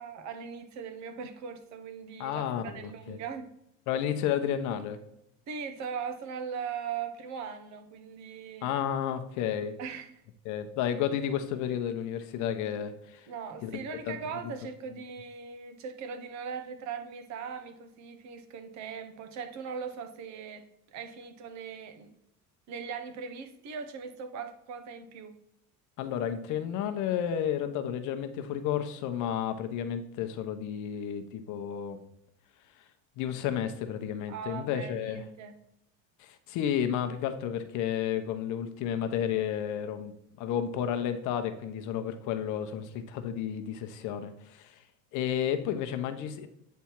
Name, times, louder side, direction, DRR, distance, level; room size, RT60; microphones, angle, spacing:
voice 1, 0.0-3.5 5.5-8.8 9.8-10.1 13.3-22.1 22.7-25.3 34.3-35.5, right 6 dB, 55° right, 8 dB, 0.9 m, -40 dB
voice 2, 2.2-3.2 3.9-5.0 8.6-9.7 10.4-13.3 13.6-14.2 26.0-32.0 33.2-35.2 36.2-40.1 40.4-44.8 45.1-46.5, left 9 dB, 60° left, 8 dB, 0.8 m, -32 dB
8.4 x 3.5 x 4.4 m, 0.79 s
cardioid pair, 145°, 34 cm